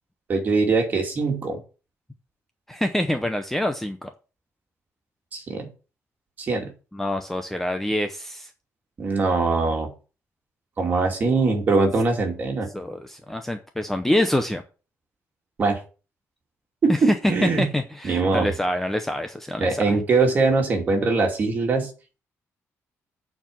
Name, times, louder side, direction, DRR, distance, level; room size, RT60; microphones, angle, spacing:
voice 1, 0.3-1.6 5.3-5.7 6.4-6.7 9.0-9.9 10.8-12.7 15.6-15.8 16.8-17.7 18.0-18.5 19.6-21.9, right 3 dB, 30° right, 1 dB, 2.6 m, -22 dB
voice 2, 2.7-4.1 6.9-8.5 12.7-14.6 16.9-20.0, left 1 dB, 5° left, 6 dB, 0.7 m, -25 dB
8.8 x 4.6 x 7.2 m, 0.34 s
cardioid pair, 175°, 5 cm